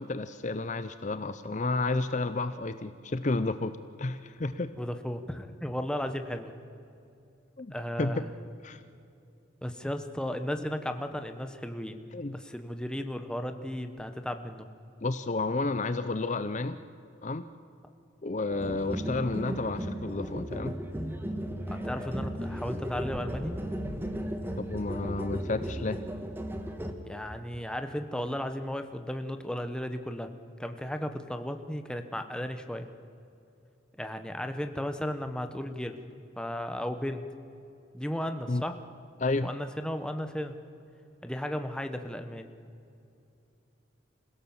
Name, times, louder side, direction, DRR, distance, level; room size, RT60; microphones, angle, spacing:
voice 1, 0.0-3.7 4.0-4.7 7.6-8.1 8.6-8.8 12.1-12.4 15.0-16.8 17.2-17.5 18.2-20.7 24.6-26.0 38.5-38.6 39.2-39.5, left 3 dB, 40° left, 11 dB, 0.6 m, -31 dB
voice 2, 4.8-6.5 7.7-8.3 9.6-12.0 12.3-14.7 21.7-23.6 27.0-30.3 30.6-32.9 34.0-36.0 36.4-37.2 37.9-38.8 39.4-40.5 41.2-42.5, equal, 5° left, 7 dB, 1.0 m, -35 dB
sound 1, 18.5-26.9, equal, 10° right, 1.4 m, -35 dB
27.0 x 16.5 x 7.2 m, 2.7 s
head